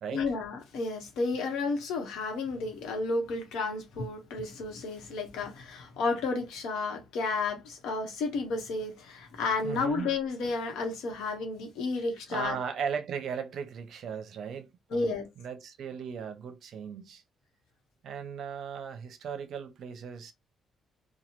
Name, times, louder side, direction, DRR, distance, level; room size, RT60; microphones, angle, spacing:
voice 1, 0.1-12.6 14.9-15.3, left 3 dB, 90° left, 1.0 m, -32 dB
voice 2, 9.6-10.1 12.3-17.2 18.0-20.3, right 7 dB, 70° right, 0.6 m, -37 dB
3.0 x 2.2 x 2.9 m
cardioid pair, 90°, 0 cm